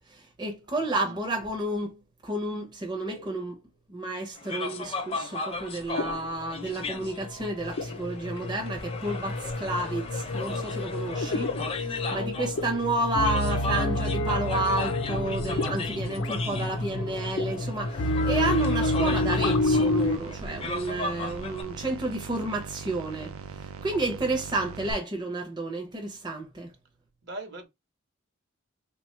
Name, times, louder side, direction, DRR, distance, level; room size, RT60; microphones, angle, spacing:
voice 1, 0.1-3.6 3.9-26.7, right 2 dB, 20° right, 0.5 m, -31 dB
voice 2, 0.7-1.4 12.0-12.3 27.2-27.7, right 2 dB, 55° right, 0.8 m, -42 dB
MS-Baro norm, 3.1-3.3 6.0-20.2, left 2 dB, 80° left, 0.6 m, -29 dB
sound 1, 4.4-21.6, left 3 dB, 30° left, 0.5 m, -36 dB
sound 2, 18.9-24.9, right 6 dB, 85° right, 0.4 m, -41 dB
3.3 x 2.2 x 3.0 m
head